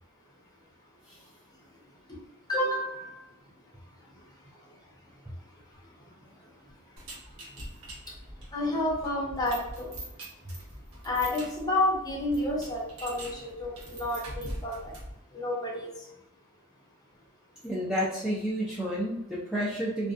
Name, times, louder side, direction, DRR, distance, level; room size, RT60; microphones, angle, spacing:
voice 1, 2.5-3.2 8.5-9.9 11.0-14.7 15.3-15.9, left 1 dB, 15° left, -4 dB, 0.7 m, -30 dB
sound 1, 7.0-15.2, right 1 dB, 65° right, 0.8 m, -43 dB
voice 2, 17.6-20.1, equal, 5° right, -7 dB, 0.3 m, -30 dB
2.4 x 2.2 x 2.4 m, 0.86 s
head